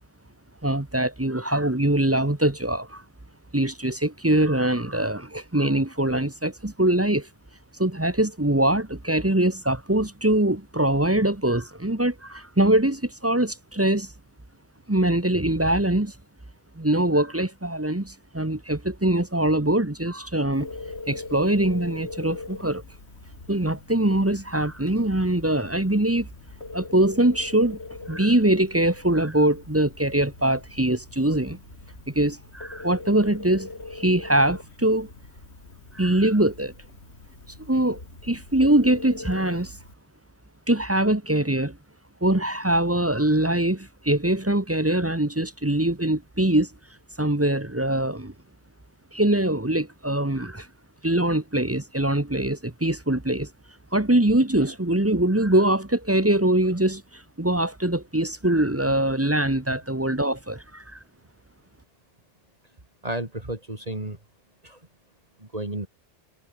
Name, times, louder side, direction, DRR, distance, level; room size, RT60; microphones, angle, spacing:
voice 1, 0.6-3.0 3.5-7.3 7.8-14.1 14.9-16.1 16.8-20.7 21.1-22.8 23.5-26.3 26.7-27.8 28.1-31.6 32.1-35.1 35.9-36.7 37.7-39.7 40.7-41.8 42.2-46.7 47.2-48.3 49.1-50.7 51.0-53.5 53.9-61.0, right 1 dB, 15° right, 1.2 m, -23 dB
Telephone, 20.5-39.9, left 3 dB, 70° left, 3.3 m, -41 dB
voice 2, 63.0-64.2 64.6-64.8 65.4-65.9, right 1 dB, 35° right, 3.4 m, -32 dB
omnidirectional pair, 1.2 m